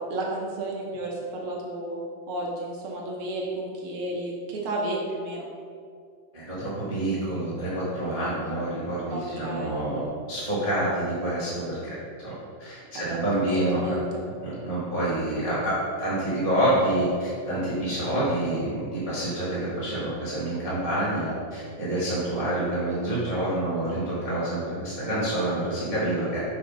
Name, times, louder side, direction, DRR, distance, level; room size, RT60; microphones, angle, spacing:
voice 1, 0.0-2.0 2.3-5.5 9.1-9.8 12.9-13.2 13.7-14.2, right 1 dB, 65° right, -2 dB, 1.4 m, -32 dB
voice 2, 6.3-12.3 12.6-14.0 14.4-26.4, right 1 dB, 25° right, -9 dB, 0.7 m, -27 dB
5.4 x 4.8 x 5.1 m, 2.3 s
omnidirectional pair, 3.3 m